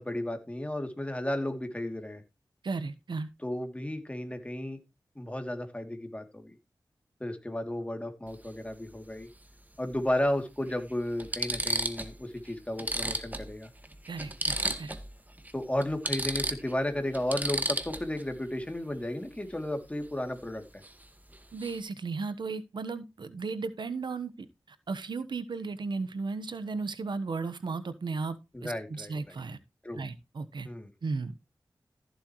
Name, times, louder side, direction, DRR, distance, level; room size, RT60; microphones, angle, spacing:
voice 1, 0.0-2.2 3.4-4.8 5.1-6.6 7.2-9.3 9.8-13.7 15.5-20.6 28.5-29.4 29.8-30.0 30.6-30.9, left 1 dB, 15° left, 2.8 m, -33 dB
voice 2, 2.6-3.3 14.1-15.0 21.5-29.6 29.9-30.7 31.0-31.3, right 4 dB, 80° right, 1.2 m, -35 dB
sound 1, 8.3-8.5 9.9-10.0 10.7-10.8 11.2-12.1 12.5-12.6 12.8-15.1 15.4-15.5 15.8-18.2 20.8-21.0 21.3-21.8, right 1 dB, 20° right, 1.8 m, -33 dB
14.5 x 7.8 x 3.1 m
wide cardioid pair, 65°, 8 cm